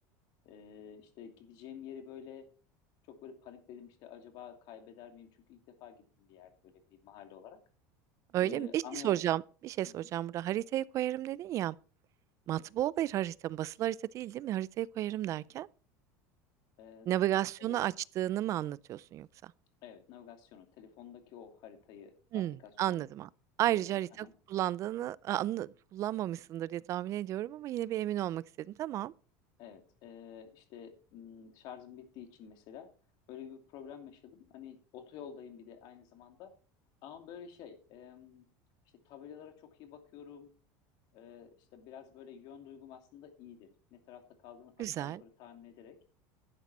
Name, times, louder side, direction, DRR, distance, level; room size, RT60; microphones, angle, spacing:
voice 1, 0.4-2.5 3.1-7.6 8.4-9.2 9.9-10.1 12.5-12.7 16.8-17.8 19.8-23.0 23.7-24.3 29.6-32.9 33.3-36.5 37.0-38.4 39.0-40.5 41.1-46.0, left 8 dB, 55° left, 2.6 m, -50 dB
voice 2, 8.3-11.8 12.5-15.7 17.1-19.5 22.3-23.3 23.6-29.1 44.8-45.2, right 13 dB, 35° right, 0.4 m, -33 dB
12.0 x 8.1 x 4.2 m
supercardioid pair, 145°, 9 cm